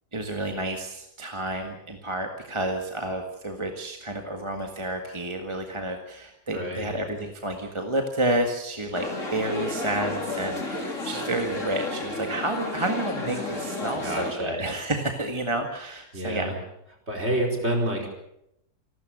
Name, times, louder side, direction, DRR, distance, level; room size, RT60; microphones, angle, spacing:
voice 1, 0.1-16.5, right 1 dB, 20° right, 3 dB, 1.7 m, -30 dB
voice 2, 6.5-6.9 14.0-14.6 16.1-16.5 17.1-18.1, right 1 dB, 40° right, 1 dB, 5.0 m, -28 dB
sound 1, 8.9-14.3, left 2 dB, 45° left, 3.6 m, -32 dB
28.0 x 13.0 x 7.8 m, 0.80 s
omnidirectional pair, 1.8 m